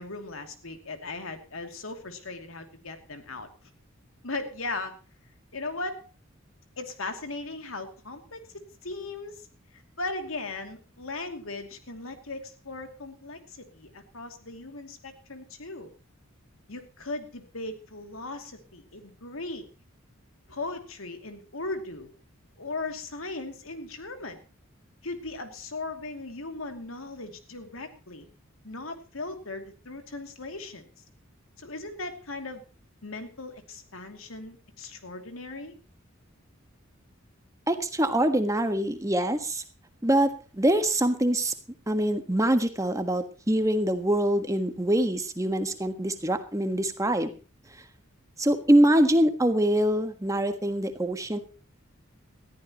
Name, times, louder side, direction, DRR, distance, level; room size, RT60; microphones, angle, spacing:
voice 1, 0.0-3.5 4.2-4.9 5.5-6.0 6.8-9.5 9.7-15.9 16.7-19.7 20.5-22.1 22.6-24.4 25.0-28.3 28.6-30.8 31.6-32.6 33.0-35.7, left 3 dB, 85° left, 6 dB, 2.6 m, -38 dB
voice 2, 37.7-39.6 40.0-41.5 41.9-47.3 48.4-51.4, right 1 dB, 15° right, 8 dB, 1.4 m, -24 dB
20.5 x 14.0 x 3.0 m, 0.34 s
head